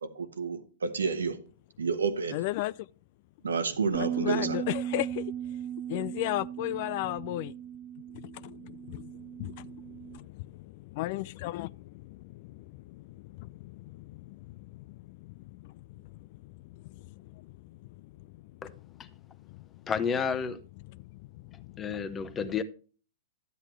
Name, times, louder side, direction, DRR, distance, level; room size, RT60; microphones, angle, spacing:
voice 1, 0.0-1.4 1.8-2.4 3.4-4.6, right 5 dB, 80° right, 1.1 m, -30 dB
voice 2, 2.3-2.9 3.9-7.6 8.1-19.9 20.8-22.4, left 16 dB, 50° left, 0.3 m, -38 dB
Bass guitar, 3.9-10.2, right 10 dB, 25° right, 1.3 m, -37 dB
voice 3, 19.9-20.6 21.8-22.6, left 6 dB, 20° left, 1.0 m, -30 dB
11.5 x 8.1 x 3.2 m
hypercardioid pair, 110°, 0 cm